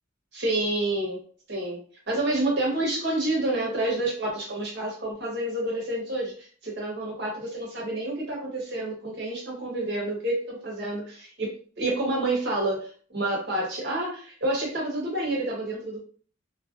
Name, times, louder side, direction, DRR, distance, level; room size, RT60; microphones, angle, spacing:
voice 1, 0.3-1.2 1.5-1.8 2.1-16.0, right 1 dB, 55° right, -2 dB, 1.0 m, -29 dB
2.5 x 2.1 x 2.4 m, 0.43 s
head